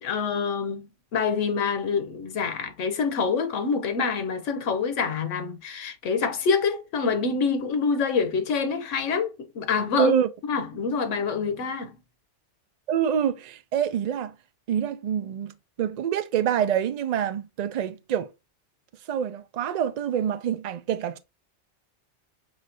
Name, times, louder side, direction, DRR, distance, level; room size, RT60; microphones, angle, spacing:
voice 1, 0.0-10.1 10.5-12.0, left 5 dB, 90° left, 1.1 m, -26 dB
voice 2, 10.0-10.3 12.9-14.3 14.7-15.5 15.8-18.3 19.1-21.2, right 8 dB, 70° right, 0.4 m, -26 dB
5.0 x 3.1 x 2.7 m
omnidirectional pair, 1.2 m